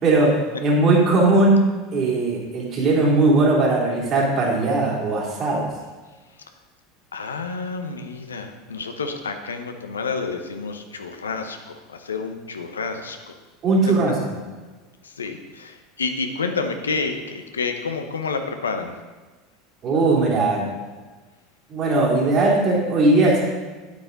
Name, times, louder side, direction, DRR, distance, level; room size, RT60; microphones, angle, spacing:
voice 1, 0.0-0.3 0.6-1.6 1.9-5.7 13.6-14.1 19.8-20.6 21.7-23.4, right 2 dB, 45° right, -3 dB, 3.4 m, -19 dB
voice 2, 7.1-13.3 15.0-18.9, left 4 dB, 85° left, 6 dB, 0.8 m, -29 dB
9.1 x 8.2 x 4.0 m, 1.3 s
hypercardioid pair, 80°, 0 cm